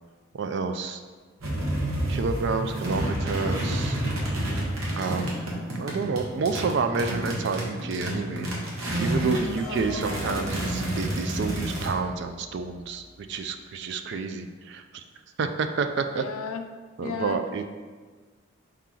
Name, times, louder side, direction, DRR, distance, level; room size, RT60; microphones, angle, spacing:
voice 1, 0.3-1.0 2.1-4.0 4.9-8.5 9.0-13.0 13.3-15.0 15.4-16.2 17.0-17.6, right 4 dB, 55° right, 7 dB, 0.3 m, -29 dB
sound 1, 1.4-9.5 9.7-11.9, right 1 dB, 80° right, 1.0 m, -29 dB
voice 2, 9.1-10.1 14.1-14.2 16.1-16.7 17.0-17.4, left 5 dB, 85° left, 7 dB, 0.4 m, -36 dB
sound 2, 9.6-13.1, left 1 dB, 5° left, 1.0 m, -41 dB
4.9 x 2.9 x 3.7 m, 1.4 s
head